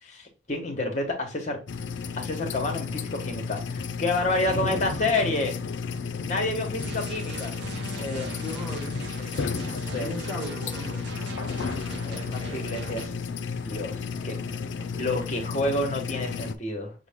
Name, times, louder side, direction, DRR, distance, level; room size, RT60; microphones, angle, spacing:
voice 1, 0.0-1.6 2.2-5.5 6.2-7.5 8.0-8.4 8.9-9.4 9.7-10.1 12.0-13.1 13.6-14.4 14.9-16.9, left 2 dB, 40° left, 1.1 m, -29 dB
sound 1, 1.7-16.5, left 5 dB, 75° left, 0.4 m, -33 dB
sound 2, 6.8-13.1, right 4 dB, 70° right, 0.6 m, -41 dB
voice 2, 8.4-9.0 9.9-11.0 12.1-12.2 13.8-15.2, left 1 dB, 10° right, 1.4 m, -38 dB
6.3 x 2.2 x 3.5 m
head